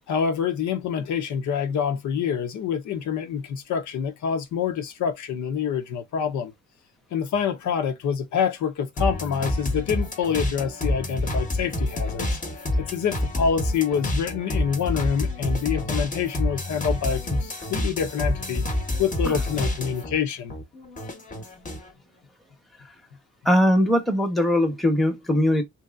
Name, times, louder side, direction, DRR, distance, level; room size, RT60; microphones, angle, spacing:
voice 1, 0.1-6.5 7.1-12.3 12.8-18.6 19.0-20.5, left 7 dB, 70° left, 0.8 m, -26 dB
sound 1, 9.0-20.2 20.5-21.9, left 1 dB, 25° left, 1.0 m, -28 dB
voice 2, 23.4-25.6, left 1 dB, ahead, 0.9 m, -20 dB
3.0 x 2.7 x 2.4 m
cardioid pair, 90°, 30 cm